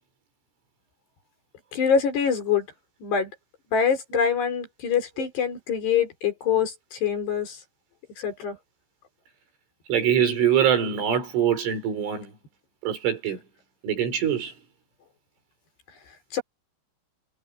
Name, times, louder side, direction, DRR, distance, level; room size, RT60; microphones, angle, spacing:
voice 1, 1.7-2.6 3.0-3.3 3.7-7.5 8.2-8.6 16.3-16.4, left 7 dB, 60° left, 6.9 m, -24 dB
voice 2, 9.9-12.3 12.8-13.4 13.8-14.5, right 9 dB, 80° right, 8.0 m, -23 dB
omnidirectional pair, 5.6 m